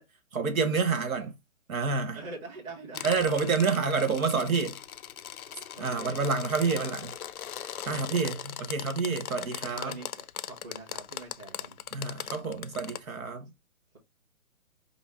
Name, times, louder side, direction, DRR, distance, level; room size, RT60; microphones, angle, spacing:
voice 1, 0.3-1.3 1.7-2.2 3.0-4.8 5.8-7.1 7.9-9.9 11.9-13.5, right 4 dB, 75° right, 1.2 m, -28 dB
voice 2, 2.1-3.3 5.7-6.4 7.8-8.4 9.6-11.9, right 3 dB, 15° right, 1.1 m, -44 dB
sound 1, 2.9-13.0, left 9 dB, 90° left, 0.6 m, -40 dB
5.2 x 2.0 x 3.6 m
hypercardioid pair, 150°, 42 cm